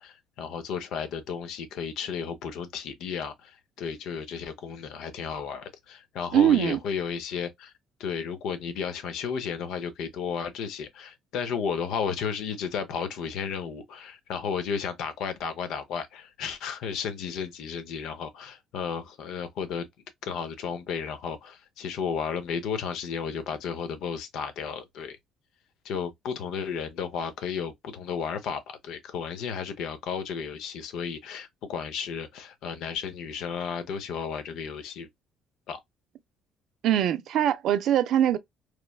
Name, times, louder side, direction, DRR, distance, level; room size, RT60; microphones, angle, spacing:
voice 1, 0.0-7.7 8.0-19.9 20.2-25.2 25.8-35.1 35.7-35.8, left 6 dB, 75° left, 0.6 m, -33 dB
voice 2, 6.3-6.8 36.8-38.4, right 10 dB, 65° right, 0.4 m, -22 dB
3.0 x 2.1 x 2.2 m
supercardioid pair, 80°, 0 cm